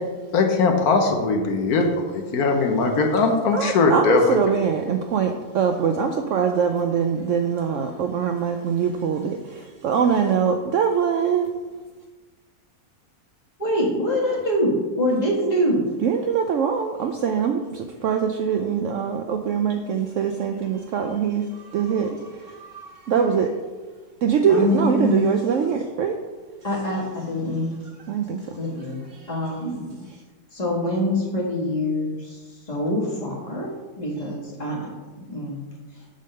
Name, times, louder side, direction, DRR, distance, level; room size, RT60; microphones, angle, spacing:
voice 1, 0.3-4.4, left 3 dB, 70° left, 4 dB, 1.3 m, -20 dB
voice 2, 3.5-11.5 16.0-23.6 24.2-26.1 28.1-28.6 29.1-29.3, right 7 dB, 70° right, 5 dB, 0.7 m, -23 dB
voice 3, 13.6-15.9 24.5-25.3 26.6-27.7 28.6-30.0 30.5-33.7 34.0-34.9 35.2-35.6 35.9-36.1, left 1 dB, 25° left, -3 dB, 1.7 m, -25 dB
7.5 x 3.6 x 6.4 m, 1.3 s
omnidirectional pair, 1.7 m